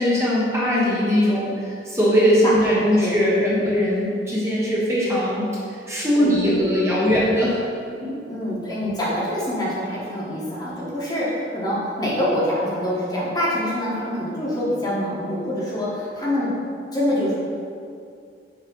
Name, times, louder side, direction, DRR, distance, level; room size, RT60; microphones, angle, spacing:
voice 1, 0.0-5.4 5.9-7.6 7.9-8.2, equal, 15° right, -8 dB, 1.2 m, -20 dB
voice 2, 6.2-6.7 8.3-16.5 16.9-17.3, left 1 dB, 20° left, -7 dB, 1.4 m, -25 dB
7.2 x 3.3 x 5.3 m, 2.4 s
head